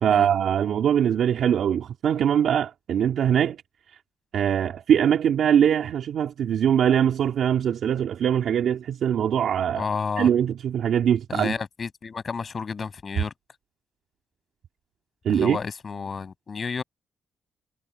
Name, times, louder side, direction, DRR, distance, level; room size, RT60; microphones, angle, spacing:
voice 1, 0.0-3.6 4.3-9.9 10.2-11.5 15.2-15.6, right 9 dB, 60° right, 2.7 m, -22 dB
voice 2, 9.8-10.3 11.3-13.3 15.3-16.8, left 5 dB, 30° left, 7.6 m, -31 dB
cardioid pair, 160°, 0 cm